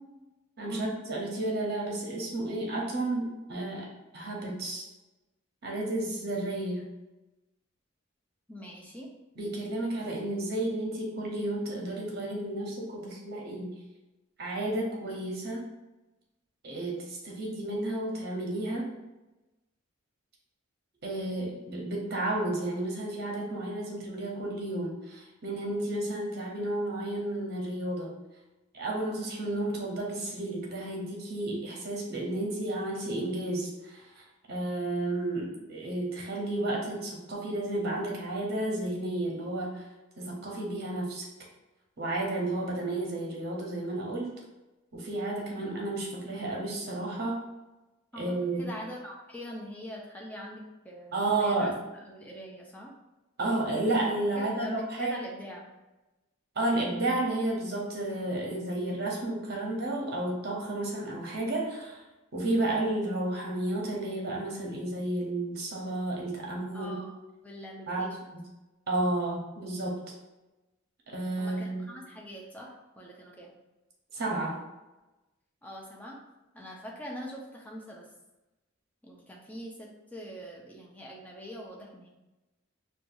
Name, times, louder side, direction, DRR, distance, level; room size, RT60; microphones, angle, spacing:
voice 1, 0.6-4.8 5.6-6.9 9.4-13.8 14.4-15.6 16.6-18.9 21.0-28.2 28.7-39.8 40.2-41.3 42.0-44.3 44.9-47.4 48.1-48.7 51.1-51.8 53.4-55.2 56.6-62.0 62.3-67.0 67.9-68.1 68.9-70.1 71.1-71.8 74.1-74.6, right 2 dB, 50° right, -2 dB, 0.9 m, -32 dB
voice 2, 8.5-9.1 48.1-52.9 54.3-55.7 66.7-67.2 67.4-68.4 71.4-73.6 75.6-76.2 76.5-78.1 79.0-82.1, equal, 5° left, -2 dB, 0.5 m, -43 dB
4.5 x 2.3 x 2.6 m, 1.0 s
head